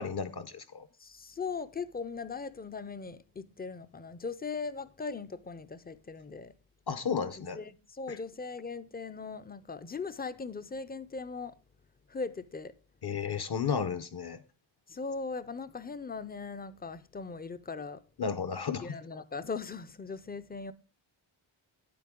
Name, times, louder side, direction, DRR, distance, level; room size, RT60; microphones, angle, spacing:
voice 1, 0.0-0.9 6.9-7.6 8.1-8.2 13.0-14.4 18.2-18.9, left 6 dB, 50° left, 0.7 m, -33 dB
voice 2, 1.0-6.5 7.5-11.5 12.1-12.7 14.9-18.0 18.8-20.7, left 4 dB, 20° left, 0.4 m, -39 dB
9.9 x 8.5 x 3.6 m
wide cardioid pair, 175°, 49 cm